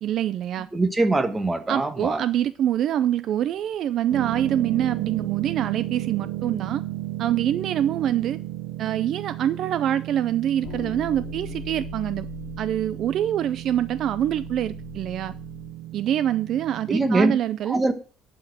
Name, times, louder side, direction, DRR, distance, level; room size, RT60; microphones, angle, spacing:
voice 1, 0.0-0.7 1.7-6.8 7.2-8.4 8.8-12.3 12.6-15.3 15.9-17.8, right 11 dB, 45° right, 0.4 m, -25 dB
voice 2, 0.7-2.2 16.9-17.3 17.7-17.9, right 2 dB, 10° right, 1.1 m, -22 dB
sound 1, 4.1-17.3, right 15 dB, 80° right, 0.7 m, -34 dB
sound 2, 10.6-15.7, left 11 dB, 50° left, 1.0 m, -41 dB
11.5 x 4.4 x 7.8 m
cardioid pair, 160°, 0 cm